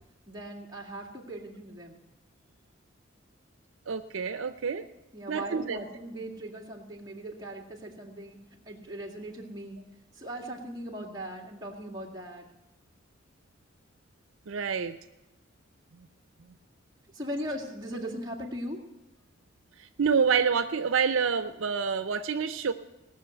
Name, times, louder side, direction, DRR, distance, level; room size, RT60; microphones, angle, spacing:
voice 1, 0.3-2.0 5.1-8.4 8.7-9.8 10.1-12.5 17.1-18.8, right 1 dB, 20° right, -2 dB, 2.1 m, -39 dB
voice 2, 3.9-4.9 5.3-5.8 14.5-14.9 19.8-22.7, right 6 dB, 80° right, 10 dB, 0.6 m, -27 dB
18.5 x 6.3 x 7.9 m, 0.99 s
head